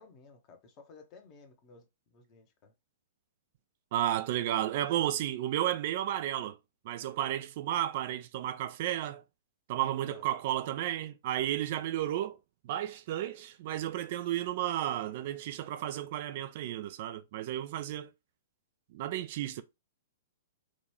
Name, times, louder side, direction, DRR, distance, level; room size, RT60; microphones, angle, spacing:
voice 1, 0.0-2.7 9.7-10.3, left 4 dB, 35° left, 1.2 m, -55 dB
voice 2, 3.9-6.6 6.8-9.2 9.7-12.4 12.6-18.1 18.9-19.6, right 12 dB, 50° right, 0.5 m, -33 dB
5.0 x 2.6 x 3.3 m
figure-of-eight pair, 110°, 0 cm